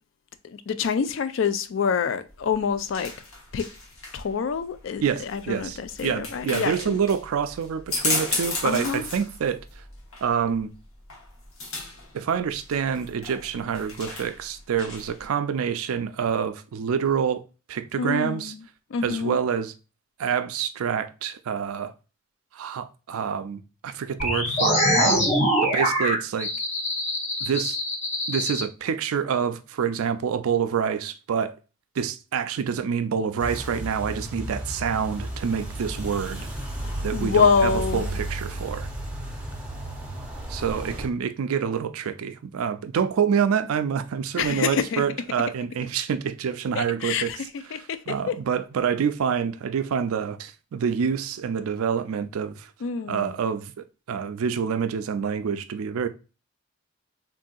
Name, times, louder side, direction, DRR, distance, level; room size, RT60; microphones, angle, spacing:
voice 1, 0.4-3.1 3.5-3.7 4.1-7.0 8.6-9.1 18.0-18.6 18.9-19.4 36.8-38.1 44.4-45.0 46.7-47.4 47.7-48.4 52.8-53.3, left 6 dB, 60° left, 0.3 m, -26 dB
sound 1, 2.3-15.3, left 2 dB, 75° left, 1.0 m, -35 dB
voice 2, 5.0-9.6 10.2-10.7 12.1-17.4 17.7-18.5 19.0-19.7 20.2-21.9 22.5-25.3 25.6-26.5 27.4-27.8 28.3-31.5 32.0-36.5 37.0-38.9 40.5-47.3 48.1-52.7 53.1-56.1, right 7 dB, 75° right, 0.4 m, -27 dB
sound 2, 24.2-28.6, equal, 30° left, 0.7 m, -24 dB
sound 3, 33.4-41.1, right 1 dB, 5° right, 0.5 m, -33 dB
3.6 x 2.6 x 2.3 m
head